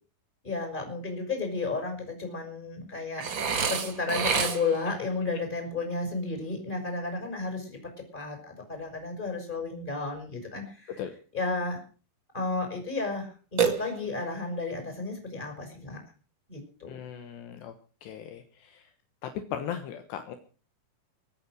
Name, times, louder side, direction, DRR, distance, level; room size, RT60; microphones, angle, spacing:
voice 1, 0.4-3.4 3.7-11.0 11.3-11.8 12.3-16.0 16.5-16.9, left 3 dB, 10° left, 4 dB, 5.7 m, -33 dB
Burping eructation, 3.2-4.9 13.6-14.4, right 6 dB, 65° right, 1.2 m, -28 dB
voice 2, 16.9-17.7 18.0-18.8 19.2-20.4, left 9 dB, 70° left, 8 dB, 3.2 m, -37 dB
22.5 x 9.0 x 6.4 m, 0.39 s
omnidirectional pair, 5.3 m